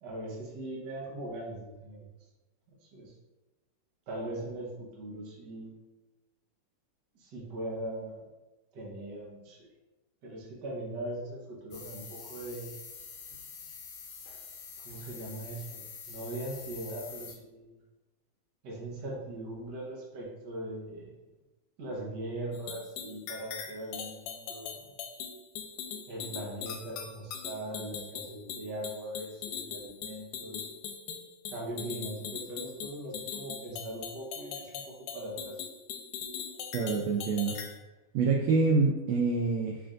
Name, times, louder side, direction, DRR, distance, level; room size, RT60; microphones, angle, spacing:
voice 1, 0.0-2.0 2.8-3.1 4.1-5.7 7.2-8.3 8.7-9.7 10.2-12.7 14.8-17.8 18.6-21.2 21.8-24.8 26.1-30.7 31.5-35.5, right 1 dB, 70° right, -3 dB, 1.0 m, -40 dB
sound 1, 11.7-17.4, left 6 dB, 70° left, 1.9 m, -46 dB
sound 2, 22.5-37.8, left 7 dB, 90° left, 2.1 m, -41 dB
voice 2, 36.7-37.5 38.1-39.8, right 4 dB, 90° right, 0 dB, 1.4 m, -26 dB
6.1 x 3.4 x 2.5 m, 1.1 s
omnidirectional pair, 3.5 m